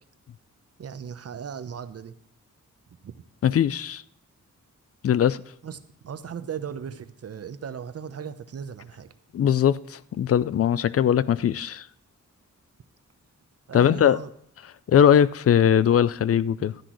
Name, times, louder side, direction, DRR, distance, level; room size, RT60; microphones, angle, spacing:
voice 1, 0.8-2.1 3.0-3.1 5.6-9.1 13.7-14.3, right 7 dB, 50° right, 0.8 m, -37 dB
voice 2, 3.4-4.0 5.0-5.4 9.3-11.9 13.7-14.2 14.9-16.7, left 9 dB, 50° left, 0.4 m, -20 dB
12.5 x 10.0 x 3.1 m
wide cardioid pair, 110°, 31 cm